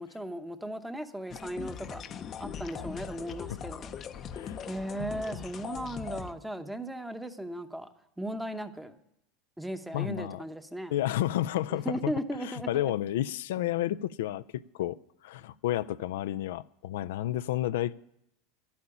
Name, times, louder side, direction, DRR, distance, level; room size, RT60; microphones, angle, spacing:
voice 1, 0.0-3.9 4.6-7.9 8.2-9.0 9.6-10.9 11.7-12.9, right 1 dB, 5° right, 9 dB, 0.9 m, -37 dB
sound 1, 1.3-6.3, left 8 dB, 35° left, 0.6 m, -40 dB
voice 2, 4.3-4.6 9.9-10.4 10.9-12.1 12.4-17.9, left 13 dB, 85° left, 14 dB, 0.4 m, -31 dB
11.0 x 8.5 x 9.8 m, 0.78 s
supercardioid pair, 135°, 0 cm